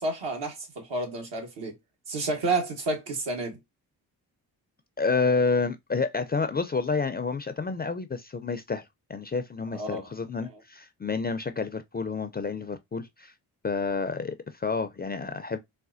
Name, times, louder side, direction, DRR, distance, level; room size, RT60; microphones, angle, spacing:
voice 1, 0.0-1.8 2.1-3.6 9.7-10.1, right 2 dB, 70° right, 1.4 m, -30 dB
voice 2, 5.0-13.3 13.6-15.6, left 4 dB, 20° left, 0.4 m, -29 dB
4.1 x 2.2 x 2.4 m
supercardioid pair, 45°, 45 cm